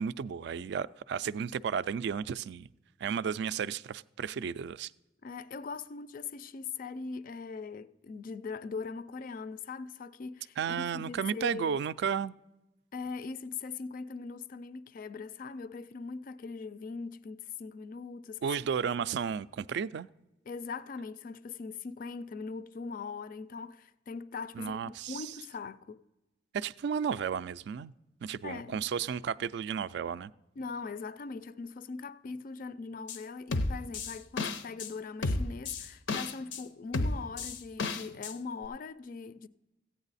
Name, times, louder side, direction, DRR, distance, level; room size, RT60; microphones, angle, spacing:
voice 1, 0.0-2.7 3.0-4.9 10.6-12.3 18.4-20.1 24.6-25.3 26.5-27.9 28.2-30.3, right 7 dB, 65° right, 0.3 m, -33 dB
voice 2, 5.2-11.8 12.9-18.4 20.5-26.0 28.4-28.8 30.6-39.5, left 4 dB, 50° left, 0.4 m, -41 dB
sound 1, 33.1-33.2 33.5-34.9 35.2-36.6 36.9-38.3 38.6-38.7, left 3 dB, 90° left, 0.6 m, -32 dB
14.5 x 8.8 x 4.1 m
head